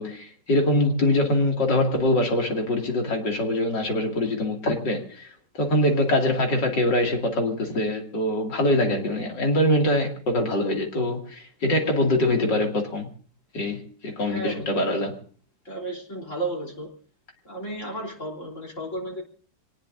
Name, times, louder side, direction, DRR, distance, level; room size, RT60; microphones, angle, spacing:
voice 1, 0.0-5.3 5.5-13.1 13.5-15.1, left 1 dB, 80° left, 3.2 m, -23 dB
voice 2, 14.3-14.8 15.6-16.9 17.4-19.2, right 2 dB, 45° left, 4.0 m, -33 dB
26.0 x 19.0 x 2.6 m
omnidirectional pair, 1.9 m